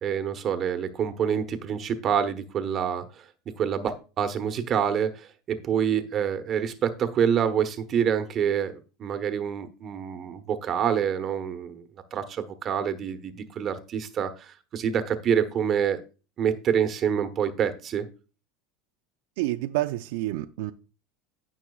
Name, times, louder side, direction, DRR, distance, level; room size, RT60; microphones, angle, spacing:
voice 1, 0.0-3.2 3.6-8.7 9.0-11.8 12.1-16.0 16.4-18.0, right 8 dB, 35° right, 1.1 m, -27 dB
voice 2, 19.4-20.7, right 16 dB, 75° right, 0.5 m, -28 dB
16.0 x 6.0 x 2.4 m
supercardioid pair, 120°, 0 cm